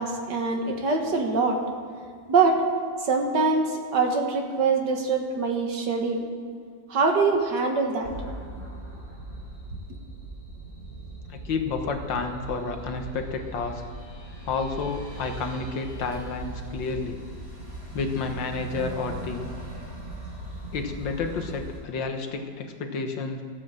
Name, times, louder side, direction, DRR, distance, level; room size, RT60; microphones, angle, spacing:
voice 1, 0.0-1.6 2.3-2.6 3.0-6.3 6.9-8.1, right 4 dB, 60° right, 3 dB, 2.0 m, -24 dB
sound 1, 8.0-21.8, right 2 dB, 30° right, 4.9 m, -39 dB
voice 2, 11.3-13.8 14.5-17.2 17.9-19.5 20.7-23.4, left 4 dB, 75° left, 5 dB, 1.9 m, -30 dB
14.5 x 9.4 x 7.6 m, 2.1 s
omnidirectional pair, 2.1 m